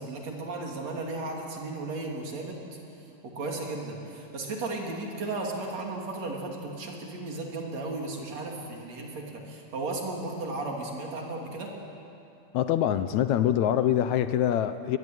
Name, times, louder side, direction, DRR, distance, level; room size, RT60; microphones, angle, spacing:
voice 1, 0.0-2.6 3.2-11.7, right 2 dB, 60° right, 0 dB, 4.1 m, -35 dB
voice 2, 12.5-15.0, left 10 dB, 75° left, 12 dB, 2.0 m, -24 dB
23.5 x 21.0 x 9.2 m, 2.7 s
omnidirectional pair, 3.5 m